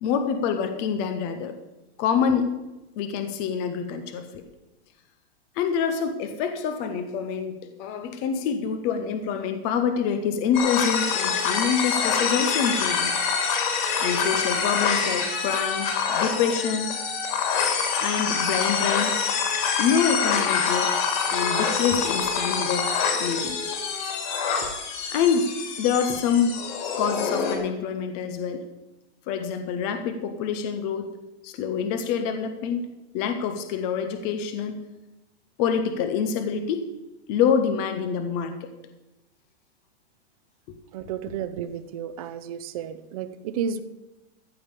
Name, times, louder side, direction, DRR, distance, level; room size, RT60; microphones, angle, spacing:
voice 1, 0.0-1.6 2.0-2.5 3.0-4.4 5.6-13.1 14.0-16.9 18.0-19.1 19.8-20.9 21.3-22.9 23.2-23.6 24.6-24.7 25.1-25.5 25.8-26.6 27.0-28.6 29.3-31.1 31.4-32.8 33.1-34.7 35.6-36.9 37.3-38.7, left 7 dB, 15° left, 8 dB, 0.4 m, -26 dB
sound 1, 10.5-27.6, left 6 dB, 45° left, 2.7 m, -26 dB
voice 2, 40.9-43.8, right 7 dB, 35° right, 13 dB, 0.6 m, -32 dB
14.0 x 5.1 x 8.2 m, 1.0 s
supercardioid pair, 160°, 33 cm